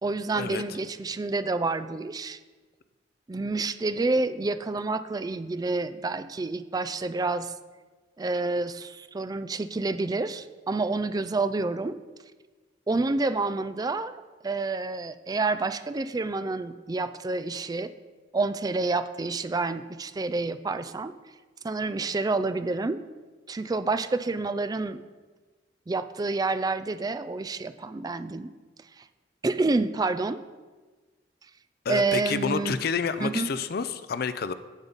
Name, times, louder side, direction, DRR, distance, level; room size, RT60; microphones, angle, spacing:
voice 1, 0.0-2.4 3.3-7.5 8.2-12.0 12.9-14.1 14.4-17.9 18.3-21.1 21.6-23.0 23.5-25.0 25.9-28.5 29.0-29.1 29.4-30.4 31.9-32.8 33.2-33.5, right 3 dB, 20° right, 12 dB, 0.3 m, -28 dB
voice 2, 31.8-34.5, left 5 dB, 55° left, 12 dB, 0.5 m, -29 dB
15.0 x 5.2 x 4.0 m, 1.3 s
head